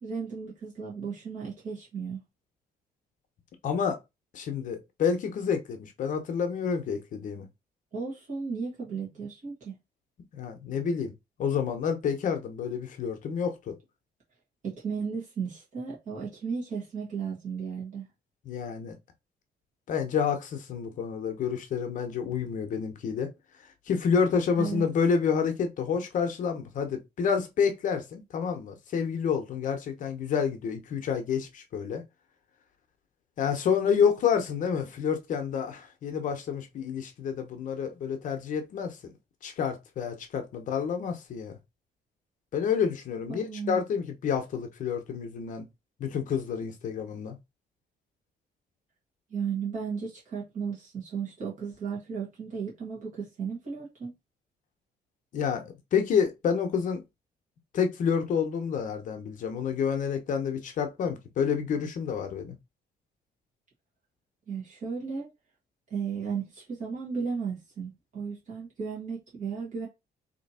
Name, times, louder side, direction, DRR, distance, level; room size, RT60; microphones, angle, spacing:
voice 1, 0.0-2.2 7.9-9.7 14.6-18.1 24.6-24.8 43.3-43.8 49.3-54.1 64.5-65.3 65.9-69.9, right 6 dB, 50° right, 1.7 m, -34 dB
voice 2, 3.6-4.0 4.3-7.5 10.3-11.1 11.4-13.8 18.4-19.0 19.9-23.3 23.9-32.0 33.4-39.1 39.4-41.5 42.5-45.6 46.0-47.4 55.3-57.0 57.7-62.6, left 6 dB, 50° left, 0.8 m, -29 dB
3.4 x 2.9 x 4.2 m
cardioid pair, 170°, 17 cm